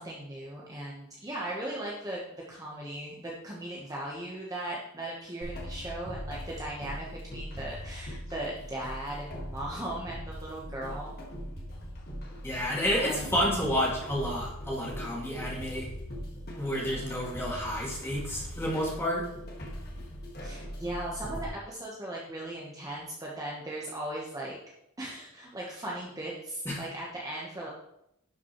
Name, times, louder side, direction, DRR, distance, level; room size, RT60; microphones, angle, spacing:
voice 1, 0.0-11.2 13.0-13.3 20.4-24.6 25.0-27.7, right 1 dB, 15° right, -4 dB, 1.1 m, -38 dB
sound 1, 5.4-21.5, equal, 45° left, 1.7 m, -40 dB
voice 2, 12.4-15.9 16.6-19.2 26.7-26.8, equal, 10° left, -4 dB, 2.2 m, -30 dB
11.5 x 5.8 x 3.1 m, 0.78 s
head